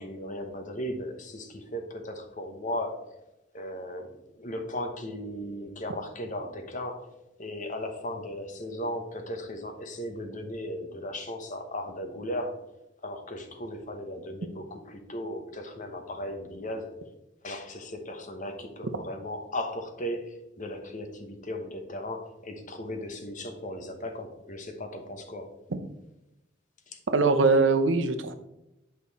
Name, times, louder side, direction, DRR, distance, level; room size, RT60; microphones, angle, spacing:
voice 1, 0.0-3.0 3.5-4.1 4.4-7.1 7.4-12.5 13.0-16.9 17.4-25.5 26.9-27.0, left 1 dB, 40° left, 5 dB, 1.0 m, -36 dB
voice 2, 27.1-28.4, right 3 dB, 70° right, 9 dB, 0.8 m, -22 dB
8.4 x 5.4 x 4.1 m, 0.91 s
head